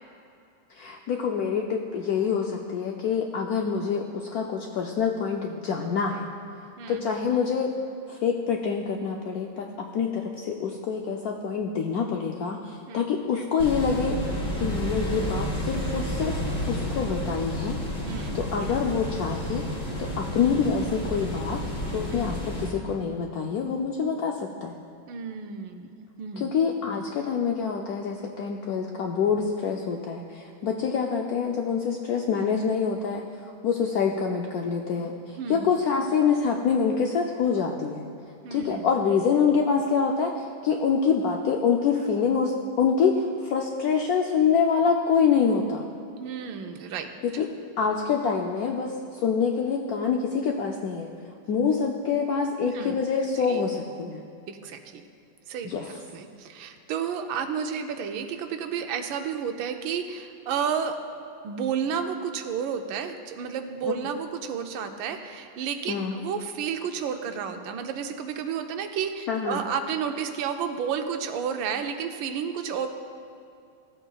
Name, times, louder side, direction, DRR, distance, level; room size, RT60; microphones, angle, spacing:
voice 1, 0.7-6.3 6.9-7.7 8.1-14.2 14.6-16.4 16.7-17.8 18.3-19.6 20.0-21.6 21.9-24.7 26.4-33.2 33.6-38.1 38.5-45.8 47.2-47.5 47.8-51.1 51.5-54.2 55.7-55.9 65.9-66.1 69.3-69.6, left 6 dB, 80° left, 1 dB, 0.8 m, -26 dB
sound 1, 13.6-22.7, equal, 25° left, 2.0 m, -31 dB
voice 2, 18.0-18.4 22.1-22.3 25.1-26.5 35.4-35.7 38.4-38.9 46.2-47.1 52.6-53.0 53.5-53.6 54.5-55.0 55.5-61.0 61.4-72.9, right 7 dB, 85° right, 7 dB, 1.4 m, -31 dB
15.0 x 7.9 x 2.3 m, 2.5 s
omnidirectional pair, 2.1 m